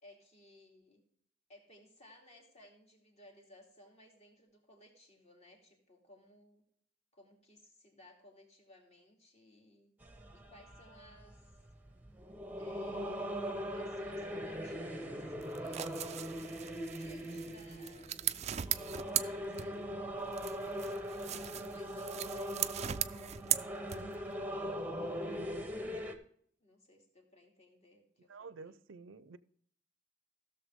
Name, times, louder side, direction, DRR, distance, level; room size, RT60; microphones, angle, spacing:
voice 1, 0.0-1.0 1.5-6.6 7.1-9.9 10.3-11.4 12.5-13.3 13.7-16.0 16.9-18.2 19.4-20.2 20.6-23.6 26.6-28.8, left 1 dB, 35° left, 2.5 m, -61 dB
sound 1, 10.0-26.2, equal, 10° right, 0.9 m, -41 dB
sound 2, 15.4-20.0 20.3-24.3, right 11 dB, 35° right, 0.4 m, -38 dB
voice 2, 28.3-29.4, right 4 dB, 85° right, 0.6 m, -50 dB
16.0 x 6.8 x 3.6 m
head